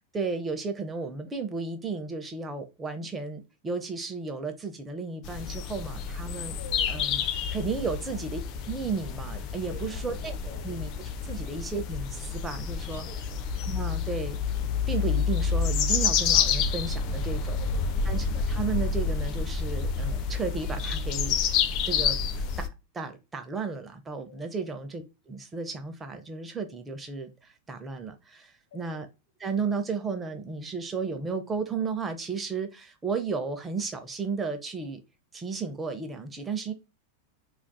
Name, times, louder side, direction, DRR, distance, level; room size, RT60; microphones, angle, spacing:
voice 1, 0.1-6.6 6.9-7.2 7.5-8.4 8.7-10.9 11.2-13.1 13.6-14.4 14.9-17.6 18.0-21.4 21.8-29.1 29.4-35.0 35.3-36.7, right 4 dB, 15° right, 0.6 m, -34 dB
sound 1, 5.2-22.7, left 6 dB, 40° left, 0.4 m, -29 dB
voice 2, 6.5-6.9 7.9-8.2 9.7-10.8 11.3-11.5 12.9-13.3 17.5-18.1 24.3-24.7 28.7-29.0, left 3 dB, 60° left, 0.9 m, -48 dB
4.5 x 2.4 x 2.2 m
figure-of-eight pair, 90°, 0 cm